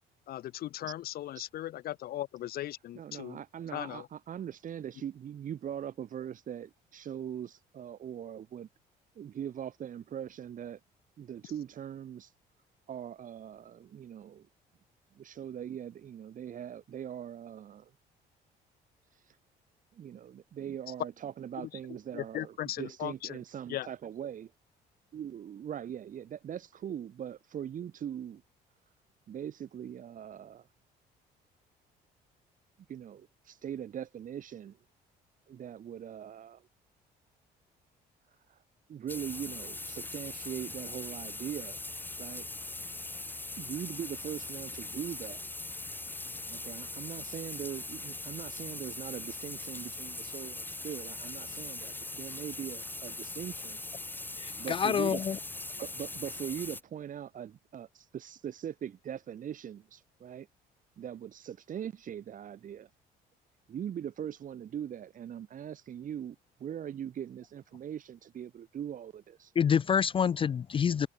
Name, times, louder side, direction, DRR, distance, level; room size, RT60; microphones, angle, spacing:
voice 1, 0.3-3.4 3.7-4.1 21.6-23.4 23.7-23.9, left 13 dB, 65° left, 1.4 m, -38 dB
voice 2, 2.9-8.7 9.2-10.8 11.2-12.3 12.9-14.5 15.1-17.9 19.9-24.5 25.1-28.4 29.3-30.7 32.9-34.8 35.5-36.7 38.5-38.6 38.9-41.8 42.2-42.5 43.6-45.4 46.5-53.8 54.6-55.2 55.8-60.5 61.0-62.9 63.7-69.5, right 9 dB, 50° right, 5.3 m, -41 dB
sound 1, 39.1-56.8, left 2 dB, 10° left, 1.9 m, -41 dB
voice 3, 54.4-55.4 69.6-71.1, left 7 dB, 30° left, 0.5 m, -27 dB
cardioid pair, 110°, 17 cm